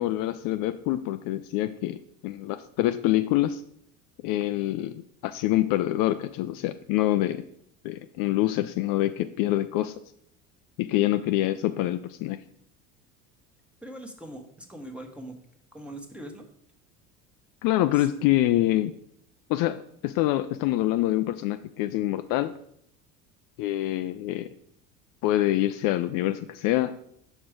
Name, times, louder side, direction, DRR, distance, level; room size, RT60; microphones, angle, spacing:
voice 1, 0.0-2.0 2.2-3.6 4.2-7.4 7.8-9.9 10.8-12.4 17.6-18.9 19.5-22.5 23.6-24.5 25.2-26.9, left 14 dB, 55° left, 10 dB, 0.5 m, -26 dB
voice 2, 13.8-15.4 15.7-16.5 17.9-18.1, right 1 dB, 5° right, 3 dB, 1.2 m, -41 dB
5.8 x 4.4 x 5.0 m, 0.69 s
hypercardioid pair, 85°, 39 cm